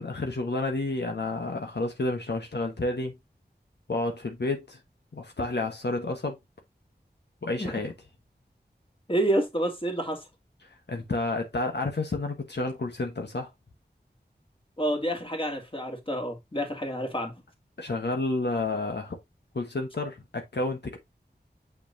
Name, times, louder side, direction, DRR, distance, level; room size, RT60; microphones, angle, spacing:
voice 1, 0.0-3.1 3.9-4.8 5.1-6.4 7.4-7.9 10.6-13.5 17.8-19.2 19.5-21.0, left 2 dB, 75° left, 1.2 m, -30 dB
voice 2, 9.1-10.2 14.8-17.3, right 1 dB, 30° left, 2.3 m, -28 dB
7.0 x 5.9 x 2.6 m
wide cardioid pair, 60°, 18 cm